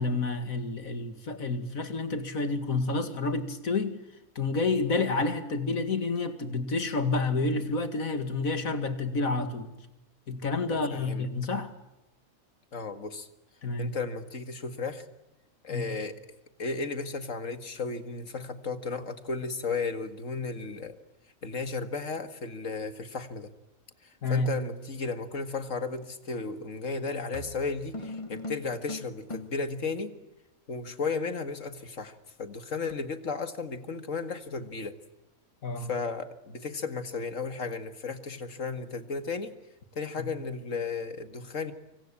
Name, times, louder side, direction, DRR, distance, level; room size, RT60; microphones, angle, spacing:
voice 1, 0.0-4.0 4.4-9.8 10.3-11.7 13.6-13.9 15.7-15.9 24.2-24.5 35.6-35.9 40.2-40.3, left 3 dB, 85° left, 2.6 m, -29 dB
voice 2, 10.7-11.3 12.7-13.3 13.8-15.0 15.6-16.1 16.6-21.0 21.4-23.5 24.0-30.1 30.7-35.0 35.8-39.5 39.9-41.7, left 4 dB, 70° left, 2.2 m, -34 dB
sound 1, 26.4-26.7 27.3-29.7, left 2 dB, 25° left, 1.2 m, -40 dB
26.0 x 24.5 x 8.8 m
omnidirectional pair, 1.4 m